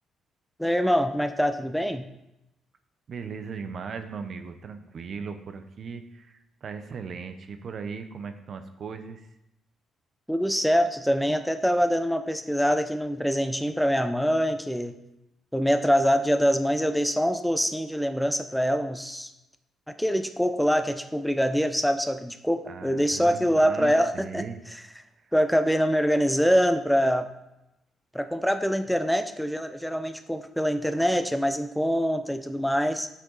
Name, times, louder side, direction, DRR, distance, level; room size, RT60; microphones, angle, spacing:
voice 1, 0.6-2.0 10.3-15.0 15.5-19.3 20.0-24.4 25.3-27.3 28.1-33.1, equal, ahead, 9 dB, 0.7 m, -24 dB
voice 2, 3.1-9.3 22.7-24.6, right 5 dB, 55° right, 8 dB, 0.8 m, -38 dB
8.3 x 6.3 x 4.0 m, 0.87 s
cardioid pair, 90°, 0 cm